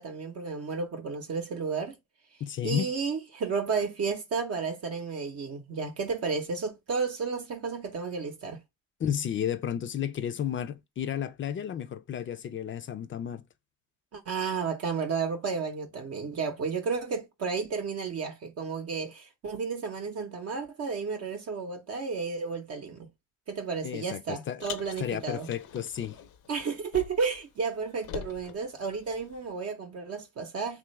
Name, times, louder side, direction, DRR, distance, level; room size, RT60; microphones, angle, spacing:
voice 1, 0.0-2.0 2.6-8.6 14.1-23.1 23.5-25.5 26.5-30.8, right 5 dB, 55° right, 0.7 m, -32 dB
voice 2, 2.4-2.9 9.0-13.4 23.8-24.6 25.0-26.2, left 9 dB, 40° left, 0.4 m, -32 dB
Car, 24.6-27.4 27.7-29.5, left 8 dB, 80° left, 0.7 m, -44 dB
3.1 x 2.4 x 3.0 m
cardioid pair, 90°, 30 cm